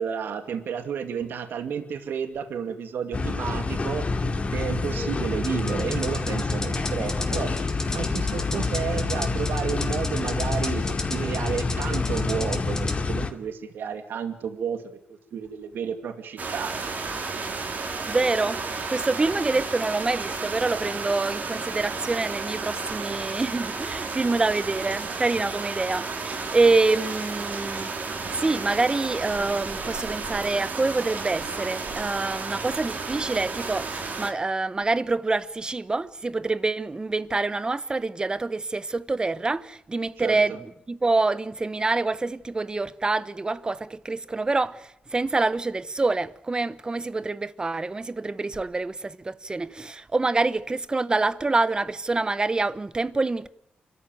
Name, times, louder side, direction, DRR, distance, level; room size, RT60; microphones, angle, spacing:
voice 1, 0.0-4.1 4.5-7.5 7.9-14.8 15.3-16.7 40.2-40.6, right 7 dB, 80° right, 2.5 m, -31 dB
sound 1, 3.1-13.3, left 3 dB, 35° left, 2.6 m, -27 dB
sound 2, 5.4-13.0, left 2 dB, 15° left, 3.4 m, -35 dB
sound 3, 16.4-34.3, right 4 dB, 50° right, 4.2 m, -32 dB
voice 2, 18.1-18.6 18.9-27.9 28.3-53.5, right 3 dB, 25° right, 1.1 m, -26 dB
29.5 x 14.0 x 9.4 m
cardioid pair, 105°, 4 cm